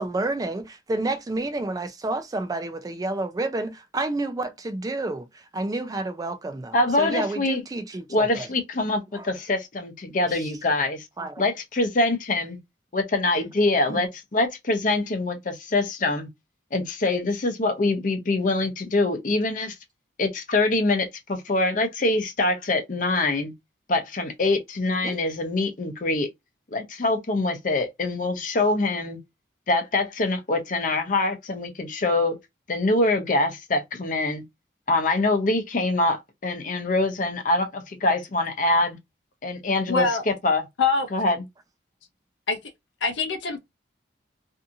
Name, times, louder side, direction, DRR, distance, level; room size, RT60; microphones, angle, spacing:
voice 1, 0.0-5.3 5.5-8.5 9.1-9.3 11.2-11.3 13.9-14.0 25.0-25.2, right 2 dB, 20° right, 0.3 m, -29 dB
voice 2, 6.7-7.6 8.1-11.0 11.4-12.6 12.9-16.3 16.7-19.8 20.2-23.5 23.9-26.3 26.7-29.2 29.7-32.4 32.7-34.4 34.9-39.0 39.4-40.6 41.1-41.4, left 2 dB, 45° left, 0.6 m, -24 dB
voice 3, 39.9-40.2 40.8-41.1 42.5-42.6 43.0-43.6, left 4 dB, 85° left, 0.6 m, -23 dB
2.7 x 2.4 x 2.6 m
head